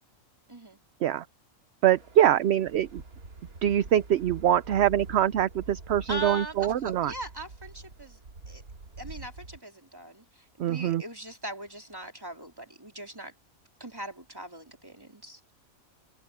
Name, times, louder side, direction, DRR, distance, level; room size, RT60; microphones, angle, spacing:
voice 1, 0.5-0.8 6.1-8.2 8.5-8.6 9.0-13.3 13.8-15.4, right 1 dB, 15° right, 3.3 m, -40 dB
voice 2, 1.8-3.0 3.6-7.1 10.6-11.0, right 11 dB, 60° right, 0.8 m, -24 dB
sound 1, 1.9-9.6, right 3 dB, 85° right, 2.8 m, -46 dB
omnidirectional pair, 1.5 m